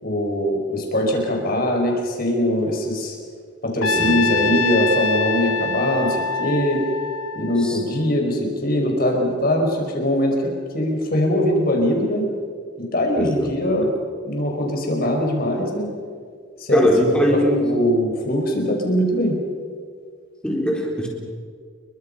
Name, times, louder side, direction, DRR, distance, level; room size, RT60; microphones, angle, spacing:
voice 1, 0.0-3.1 3.6-6.8 7.4-10.4 10.7-12.3 12.8-13.9 14.2-15.9 16.6-16.9 17.3-19.4, left 1 dB, 45° left, 1 dB, 5.4 m, -21 dB
Trumpet, 3.8-8.0, left 4 dB, 90° left, 1.2 m, -25 dB
voice 2, 13.1-13.5 16.7-17.6 20.4-21.1, equal, 5° left, -1 dB, 4.1 m, -20 dB
29.0 x 23.5 x 5.6 m, 2.1 s
head